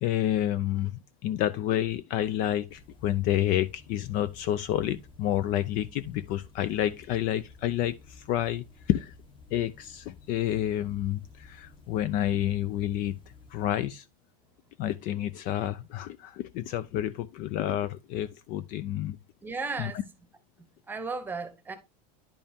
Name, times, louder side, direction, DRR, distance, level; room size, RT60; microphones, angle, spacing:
voice 1, 0.0-9.1 9.5-13.2 13.5-14.0 14.8-19.2 19.8-19.9, left 12 dB, 45° left, 0.4 m, -29 dB
sound 1, 2.7-13.7, left 4 dB, 25° left, 1.1 m, -52 dB
voice 2, 19.4-20.0 20.9-21.8, right 4 dB, 10° right, 1.0 m, -34 dB
10.0 x 5.3 x 2.7 m
supercardioid pair, 150°, 21 cm